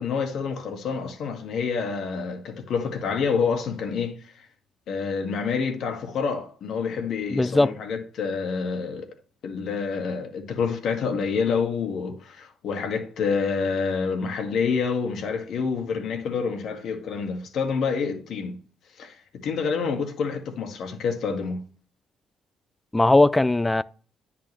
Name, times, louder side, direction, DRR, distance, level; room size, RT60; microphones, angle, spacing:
voice 1, 0.0-4.3 4.9-9.1 9.4-18.6 19.0-19.2 19.4-21.6, left 5 dB, 70° left, 1.9 m, -27 dB
voice 2, 7.3-7.8 22.9-23.8, left 2 dB, 15° left, 0.4 m, -19 dB
10.5 x 6.0 x 3.3 m
cardioid pair, 90°, 0 cm